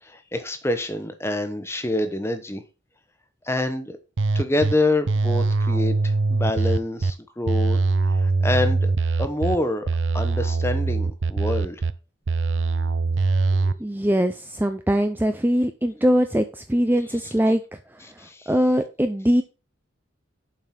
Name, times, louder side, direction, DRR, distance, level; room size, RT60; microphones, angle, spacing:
voice 1, 0.0-2.6 3.4-4.0 4.3-8.9 9.2-9.9 10.1-11.8 18.0-18.5, left 2 dB, 15° left, 8 dB, 1.0 m, -27 dB
sound 1, 4.2-4.7 5.1-7.1 7.5-9.6 9.9-11.9 12.3-13.7, right 3 dB, 70° right, 0.6 m, -22 dB
voice 2, 13.8-17.6 18.5-19.4, equal, 10° right, 7 dB, 0.5 m, -21 dB
7.5 x 5.5 x 5.9 m, 0.32 s
head